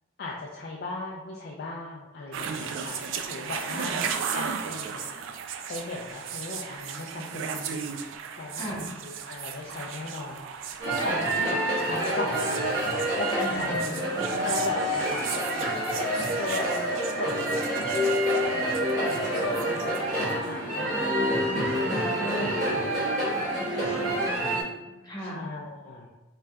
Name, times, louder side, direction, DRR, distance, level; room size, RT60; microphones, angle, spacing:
voice 1, 0.2-3.9 4.3-5.1 5.7-8.0 8.4-8.6 9.0-10.4 10.8-12.8 13.2-13.8 14.1-15.8 16.3-16.8 17.1-17.5 18.3-21.3 22.0-22.3 22.6-22.7 23.0-24.5 25.2-26.1, left 3 dB, 50° left, -3 dB, 0.4 m, -38 dB
sound 1, 2.3-20.4, right 7 dB, 75° right, 0.3 m, -36 dB
sound 2, 10.8-24.6, right 1 dB, 40° right, 1.2 m, -27 dB
voice 2, 13.4-14.4 20.9-22.5 23.3-24.4 24.9-25.4, equal, 20° left, -6 dB, 0.9 m, -38 dB
3.8 x 3.3 x 2.3 m, 1.0 s
head